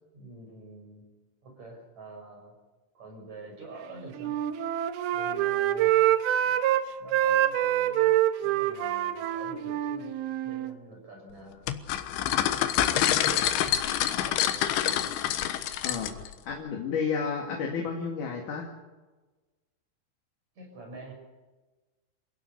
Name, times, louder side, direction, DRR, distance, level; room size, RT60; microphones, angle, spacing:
voice 1, 0.1-1.1 1.4-2.6 2.9-4.4 5.1-6.0 6.4-6.6 7.0-8.2 8.4-10.2 10.4-11.6 12.4-13.7 14.2-15.1 20.6-21.1, right 3 dB, 35° right, 2 dB, 7.5 m, -46 dB
Wind instrument woodwind instrument, 4.1-6.8 7.1-10.7, right 12 dB, 75° right, 2.5 m, -26 dB
sound 1, 11.7-16.3, left 11 dB, 85° left, 3.5 m, -26 dB
voice 2, 15.8-18.7, left 5 dB, 50° left, 1 dB, 3.3 m, -32 dB
28.0 x 17.0 x 6.9 m, 1.2 s
omnidirectional pair, 5.4 m